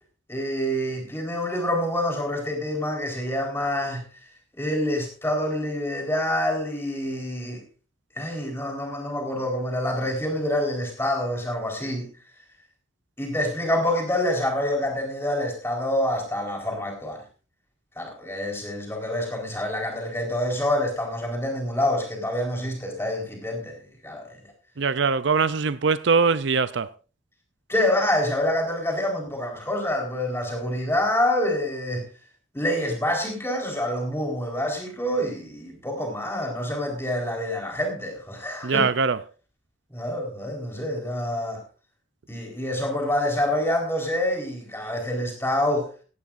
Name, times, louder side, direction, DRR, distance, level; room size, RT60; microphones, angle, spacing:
voice 1, 0.3-4.0 4.6-7.6 8.2-12.1 13.2-17.2 18.0-24.5 27.7-32.1 32.5-38.9 39.9-41.6 42.3-45.9, left 1 dB, 10° left, 4.3 m, -27 dB
voice 2, 24.8-26.9 38.6-39.2, right 5 dB, 60° right, 0.5 m, -22 dB
16.0 x 16.0 x 2.6 m
head